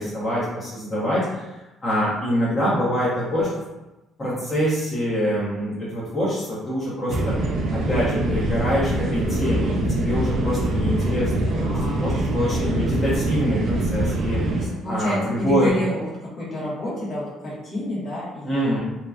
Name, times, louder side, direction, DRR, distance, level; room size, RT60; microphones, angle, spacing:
voice 1, 0.0-3.5 4.2-7.3 7.7-11.7 12.0-14.4 14.9-15.7 18.4-18.8, equal, 20° left, -10 dB, 0.9 m, -25 dB
sound 1, 7.1-14.7, right 1 dB, 55° right, 0.4 m, -24 dB
voice 2, 11.5-12.6 14.6-18.8, left 1 dB, 45° left, -7 dB, 1.1 m, -29 dB
2.8 x 2.5 x 2.3 m, 1.0 s
cardioid pair, 130°, 0 cm